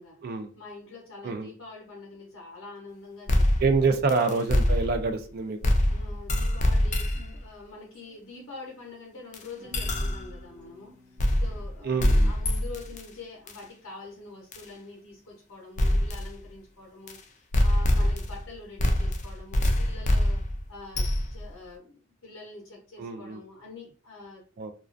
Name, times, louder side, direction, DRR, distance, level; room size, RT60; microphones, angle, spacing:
voice 1, 0.5-4.0 5.9-20.4 20.7-24.4, left 3 dB, 80° left, -3 dB, 0.7 m, -45 dB
sound 1, 3.3-5.2 5.6-7.4 9.3-9.4 9.7-10.3 11.2-11.7 12.0-13.0 13.5-13.6 14.5-14.6 15.8-16.3 17.1-17.2 17.5-18.5 18.8-21.5, left 1 dB, 35° left, 0.3 m, -24 dB
voice 2, 3.6-5.7 11.8-12.3 23.0-23.4 24.6-24.7, right 4 dB, 50° right, 7 dB, 0.3 m, -26 dB
sound 2, 7.7-8.2 9.6-11.6, left 1 dB, 85° right, 0.7 m, -52 dB
2.3 x 2.3 x 2.4 m, 0.39 s
head